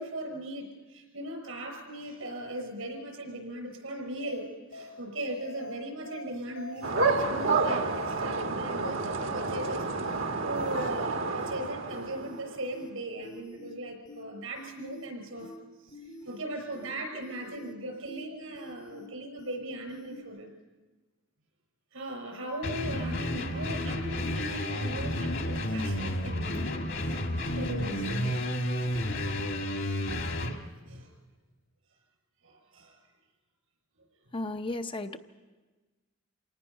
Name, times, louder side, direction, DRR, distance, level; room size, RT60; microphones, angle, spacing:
voice 1, 0.0-15.5 15.9-20.5 21.9-26.7 27.0-27.3 27.5-28.4 30.8-31.1 32.4-33.0, right 1 dB, 85° right, 3 dB, 6.0 m, -38 dB
sound 1, 4.2-4.4 4.7-4.9 5.2-5.7 6.1-6.2 6.6-7.1 7.4-7.6 7.9-8.4 8.7-8.9 9.2-9.7 10.1-10.2 10.6-11.1 11.4-11.6 11.9-12.4 12.7-12.9 13.2-13.7 14.1-14.2 14.6-15.1 15.4-15.6 15.9-16.4 16.7-16.9 17.2-17.7 18.1-18.2 18.6-19.1 19.4-19.6 19.9-20.2, left 1 dB, 80° left, 3.6 m, -46 dB
sound 2, 6.8-12.5, right 3 dB, 65° right, 1.4 m, -30 dB
sound 3, 22.6-30.6, left 1 dB, 60° left, 1.9 m, -31 dB
voice 2, 34.3-35.2, left 2 dB, 25° left, 7 dB, 0.6 m, -34 dB
27.5 x 19.0 x 5.5 m, 1.3 s
head